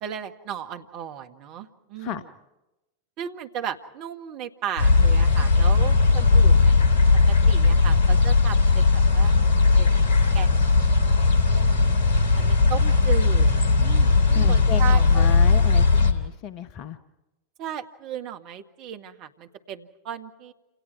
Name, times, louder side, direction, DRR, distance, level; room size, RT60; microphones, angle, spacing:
voice 1, 0.0-2.3 3.2-6.8 7.3-10.1 10.3-10.8 11.5-12.0 12.4-15.3 17.6-20.5, right 9 dB, 40° right, 6 dB, 1.7 m, -36 dB
sound 1, 4.8-16.1, left 3 dB, 55° left, 2.7 m, -18 dB
voice 2, 14.3-17.0, left 9 dB, 40° left, 12 dB, 1.1 m, -33 dB
29.0 x 28.0 x 4.7 m, 0.98 s
figure-of-eight pair, 90°, 0 cm